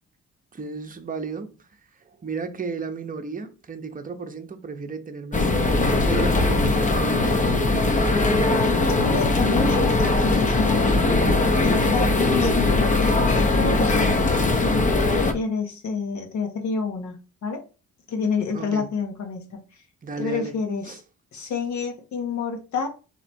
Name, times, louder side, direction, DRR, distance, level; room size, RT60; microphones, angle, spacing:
voice 1, 0.5-1.5 2.2-5.8 6.0-8.0 18.5-18.9 20.0-20.6 20.9-21.0, right 4 dB, 30° right, 0.7 m, -33 dB
sound 1, 5.3-15.3, left 2 dB, 25° left, 0.7 m, -20 dB
voice 2, 9.0-11.1 11.6-13.2 13.5-14.3 15.1-17.6 18.1-19.6 20.2-20.9 21.3-22.9, left 5 dB, 70° left, 1.2 m, -28 dB
3.2 x 3.0 x 4.2 m
cardioid pair, 90°, 30 cm